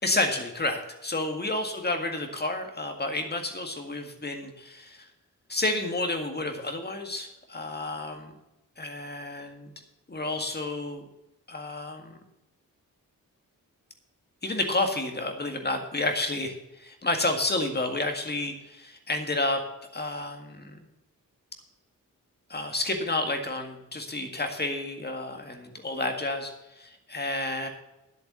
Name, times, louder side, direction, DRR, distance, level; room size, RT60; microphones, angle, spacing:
voice 1, 0.0-5.1 5.5-8.3 8.8-9.7 10.1-11.0 11.5-12.2 14.4-19.6 19.9-20.8 22.5-27.7, left 2 dB, 30° left, 5 dB, 1.9 m, -30 dB
10.5 x 8.2 x 6.8 m, 0.93 s
wide cardioid pair, 130°, 34 cm